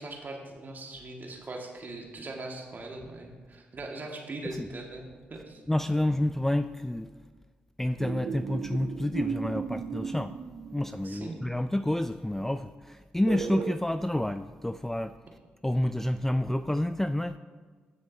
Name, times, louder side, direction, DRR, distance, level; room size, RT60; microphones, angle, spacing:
voice 1, 0.0-5.6 11.0-11.4, right 2 dB, 40° right, 1 dB, 1.7 m, -40 dB
voice 2, 5.7-7.1 7.8-10.3 10.7-15.1 15.6-17.4, left 1 dB, 5° left, 11 dB, 0.3 m, -29 dB
sound 1, 8.0-11.2 13.3-13.8, right 6 dB, 55° right, 0.5 m, -35 dB
16.0 x 6.2 x 2.7 m, 1.4 s
hypercardioid pair, 45°, 5 cm